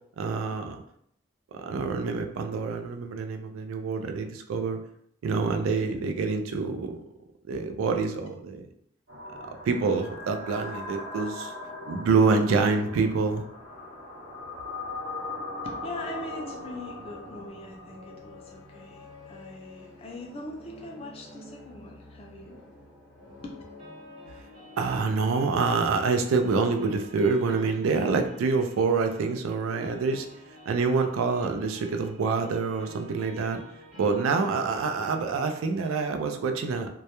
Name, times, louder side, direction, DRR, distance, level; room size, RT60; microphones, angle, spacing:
voice 1, 0.2-0.8 1.5-4.8 5.2-7.0 7.5-8.7 9.7-11.5 11.9-13.4 24.8-30.3 30.7-33.6 34.0-36.9, right 4 dB, 90° right, 6 dB, 0.3 m, -26 dB
sound 1, 9.1-19.2, left 2 dB, 65° right, 0.8 m, -40 dB
sound 2, 15.3-26.9, left 3 dB, 75° left, 0.8 m, -51 dB
voice 2, 15.6-22.6 23.4-23.6, left 2 dB, 30° left, 0 dB, 0.3 m, -41 dB
sound 3, 23.8-35.8, left 1 dB, 30° right, 0.6 m, -51 dB
2.2 x 2.1 x 2.8 m, 0.71 s
head